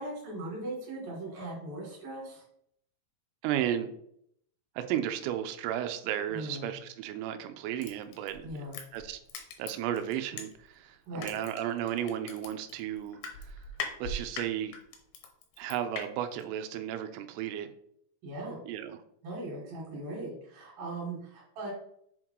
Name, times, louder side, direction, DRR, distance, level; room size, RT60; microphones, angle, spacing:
voice 1, 0.0-2.4 6.3-6.7 8.4-8.8 11.1-11.4 18.2-18.6 19.2-21.7, right 1 dB, 55° right, -6 dB, 3.4 m, -39 dB
voice 2, 3.4-3.9 4.8-8.5 8.9-9.2 9.6-13.6 14.0-14.7 15.6-17.7 18.7-19.0, right 10 dB, 85° right, 8 dB, 3.2 m, -34 dB
Crushing, 7.8-10.8 11.2-16.0 16.4-16.5, left 4 dB, 80° left, 2.1 m, -40 dB
7.8 x 3.7 x 4.7 m, 0.71 s
omnidirectional pair, 5.7 m